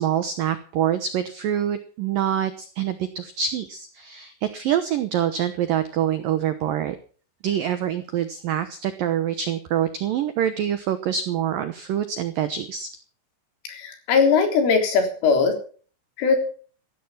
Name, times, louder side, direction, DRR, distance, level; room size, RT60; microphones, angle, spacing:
voice 1, 0.0-7.0 7.4-12.9, right 10 dB, 85° right, 11 dB, 1.9 m, -25 dB
voice 2, 13.7-15.5 16.2-16.4, left 5 dB, 80° left, 4 dB, 6.3 m, -20 dB
16.0 x 13.5 x 5.8 m, 0.42 s
omnidirectional pair, 5.6 m